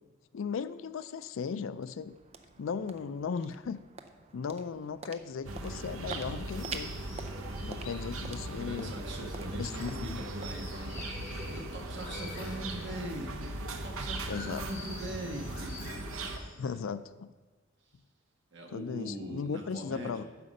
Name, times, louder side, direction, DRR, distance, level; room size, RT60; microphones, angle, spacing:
voice 1, 0.3-2.2 2.6-3.8 4.3-6.9 7.6-8.9 9.6-10.2 14.3-14.6 16.6-17.3 18.7-20.2, left 6 dB, 70° left, 14 dB, 0.4 m, -36 dB
sound 1, 1.6-13.8, right 4 dB, 30° right, 0.5 m, -49 dB
sound 2, 5.4-16.4, right 2 dB, 85° right, 0.9 m, -39 dB
sound 3, 6.3-16.8, left 2 dB, 40° left, 3.0 m, -48 dB
voice 2, 8.5-13.3 13.7-15.9 16.6-16.8 18.5-20.2, right 1 dB, 60° right, 1 dB, 1.5 m, -42 dB
9.5 x 4.9 x 6.5 m, 1.3 s
head